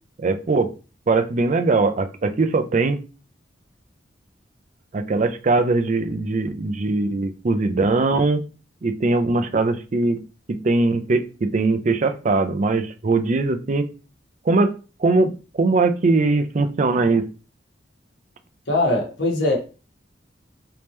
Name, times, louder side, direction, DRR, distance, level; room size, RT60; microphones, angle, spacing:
voice 1, 0.2-0.7 1.1-3.0 4.9-8.4 8.8-10.2 10.5-13.9 14.4-14.7 15.0-17.3, right 3 dB, 45° right, 0.5 m, -21 dB
voice 2, 18.7-19.6, left 2 dB, 70° left, 1.2 m, -21 dB
3.5 x 2.8 x 3.1 m
head